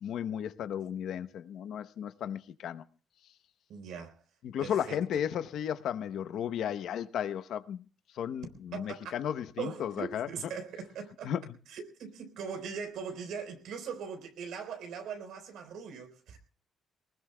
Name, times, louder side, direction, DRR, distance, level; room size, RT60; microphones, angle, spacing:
voice 1, 0.0-2.8 4.4-7.9 8.1-10.3 11.2-11.4, left 9 dB, 70° left, 0.8 m, -34 dB
voice 2, 3.7-4.2 4.6-5.0 8.7-9.2 9.6-11.3 11.7-16.4, right 6 dB, 85° right, 3.9 m, -40 dB
24.5 x 19.5 x 2.2 m
cardioid pair, 145°, 0 cm